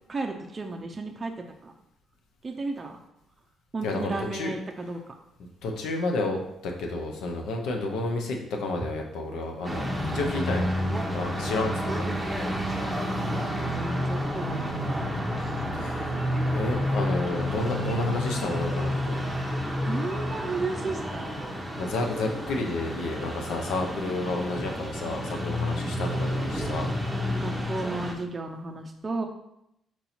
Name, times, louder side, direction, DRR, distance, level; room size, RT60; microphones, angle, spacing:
voice 1, 0.1-1.7 2.4-3.0 3.7-5.0 13.3-14.9 19.9-21.4 25.3-25.5 27.1-29.3, right 3 dB, 30° right, 2 dB, 0.5 m, -34 dB
voice 2, 3.8-4.5 5.6-10.6 11.1-12.1 15.7-16.0 16.5-19.2 21.7-26.9, left 2 dB, 85° left, 2 dB, 0.7 m, -30 dB
sound 1, 9.6-28.1, equal, 5° right, 0.9 m, -30 dB
4.5 x 2.8 x 4.2 m, 0.80 s
cardioid pair, 90°, 0 cm